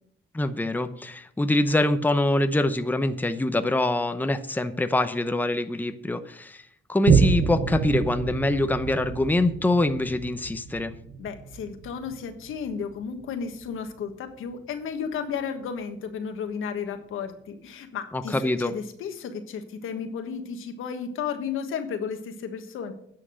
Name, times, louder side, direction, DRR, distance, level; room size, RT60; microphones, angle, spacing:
voice 1, 0.3-6.6 6.9-10.9 18.1-18.7, left 2 dB, 10° left, 9 dB, 0.7 m, -24 dB
Boom, 7.0-14.0 14.5-14.6, right 6 dB, 75° right, 1.1 m, -28 dB
voice 2, 11.2-22.9, left 6 dB, 85° left, 7 dB, 1.4 m, -33 dB
9.8 x 5.9 x 7.8 m, 0.68 s
cardioid pair, 90°, 20 cm